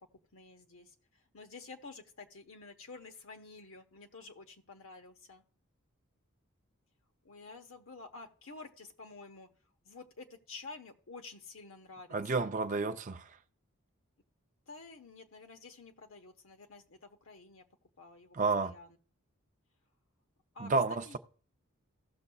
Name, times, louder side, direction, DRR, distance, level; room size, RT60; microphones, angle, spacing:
voice 1, 0.3-0.9 1.3-5.4 7.2-9.5 9.8-12.5 14.7-17.6 18.0-18.4 18.6-18.9 20.5-20.7 21.0-21.2, left 3 dB, 70° left, 1.2 m, -50 dB
voice 2, 12.1-13.3 18.3-18.7 20.6-21.2, right 3 dB, 35° right, 0.5 m, -31 dB
16.5 x 6.7 x 2.3 m
head